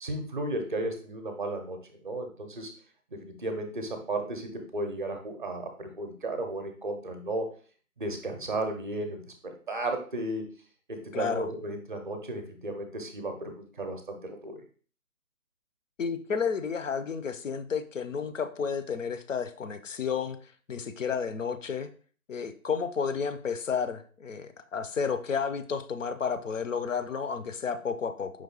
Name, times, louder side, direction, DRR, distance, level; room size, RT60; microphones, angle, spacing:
voice 1, 0.0-2.7 3.1-7.5 8.0-10.5 10.9-14.6, right 2 dB, 35° right, 5 dB, 0.6 m, -34 dB
voice 2, 11.1-11.5 16.0-20.4 20.7-21.9 22.3-28.3, left 6 dB, 60° left, 9 dB, 0.5 m, -31 dB
5.0 x 3.1 x 2.8 m, 0.42 s
figure-of-eight pair, 145°, 45 cm